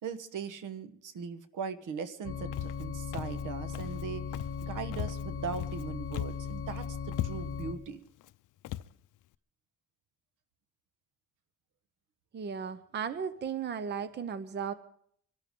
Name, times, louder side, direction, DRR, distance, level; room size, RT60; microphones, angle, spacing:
voice 1, 0.0-4.2 4.6-8.0, right 6 dB, 75° right, 11 dB, 1.3 m, -39 dB
sound 1, 2.2-7.7, left 6 dB, 45° left, 1.6 m, -38 dB
Walk footsteps, 2.5-2.8 3.1-3.4 3.7-4.0 4.3-4.7 4.9-5.8 6.1-6.5 6.8-6.9 7.1-7.7 8.2-8.3 8.6-8.9, left 14 dB, 75° left, 0.5 m, -38 dB
voice 2, 12.3-14.7, right 7 dB, 35° right, 12 dB, 0.7 m, -35 dB
25.0 x 12.5 x 3.7 m, 0.64 s
cardioid pair, 145°, 31 cm